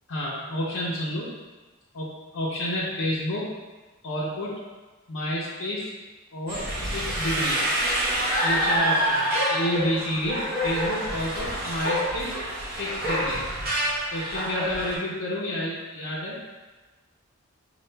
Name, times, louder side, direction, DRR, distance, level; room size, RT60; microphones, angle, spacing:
voice 1, 0.1-1.3 1.9-2.1 2.3-3.5 4.0-4.6 5.1-5.9 6.3-7.6 8.4-12.4 12.7-13.4 14.1-16.4, left 1 dB, 65° left, -8 dB, 0.6 m, -30 dB
sound 1, 6.5-14.9, equal, 45° right, 1.0 m, -27 dB
5.6 x 2.3 x 3.2 m, 1.2 s
head